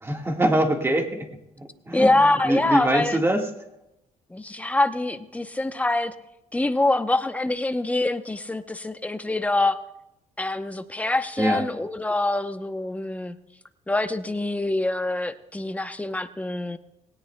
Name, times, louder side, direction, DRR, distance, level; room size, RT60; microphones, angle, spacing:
voice 1, 0.0-1.3 1.6-3.5 11.4-11.6, right 1 dB, 15° right, 3 dB, 1.6 m, -24 dB
voice 2, 1.9-3.2 4.3-6.1 6.5-9.8 10.4-13.4 13.9-16.8, left 2 dB, 10° left, 9 dB, 0.7 m, -25 dB
19.5 x 17.5 x 2.2 m, 0.87 s
cardioid pair, 105°, 14 cm